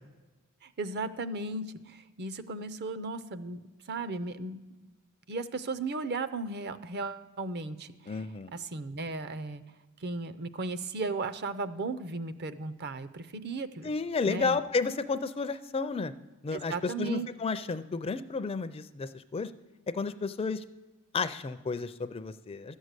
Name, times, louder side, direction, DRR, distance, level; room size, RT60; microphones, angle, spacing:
voice 1, 0.6-4.6 5.3-8.2 8.5-9.6 10.0-13.9 14.3-14.6 16.5-17.3, right 3 dB, 50° right, 12 dB, 0.6 m, -36 dB
voice 2, 8.1-8.5 13.8-16.1 16.4-19.5 19.9-20.6 21.1-22.8, left 4 dB, 25° left, 12 dB, 0.4 m, -32 dB
12.5 x 6.3 x 8.1 m, 1.3 s
head